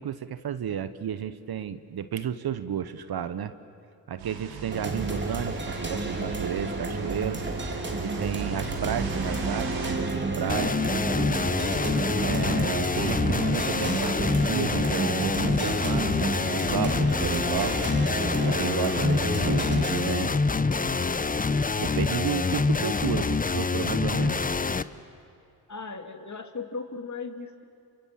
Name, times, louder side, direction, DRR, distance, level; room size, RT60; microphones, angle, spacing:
voice 1, 0.0-3.5 4.1-7.4 7.9-10.8 12.2-17.9 18.4-20.3 21.8-24.5, right 9 dB, 50° right, 12 dB, 1.2 m, -32 dB
sound 1, 4.2-9.9, right 5 dB, 80° right, 3.8 m, -37 dB
sound 2, 4.7-20.2, right 2 dB, 25° right, 3.2 m, -31 dB
sound 3, 10.5-24.8, left 4 dB, 20° left, 0.8 m, -26 dB
voice 2, 25.7-27.6, left 4 dB, 35° left, 7 dB, 2.5 m, -37 dB
28.5 x 25.5 x 7.5 m, 2.5 s
hypercardioid pair, 45°, 47 cm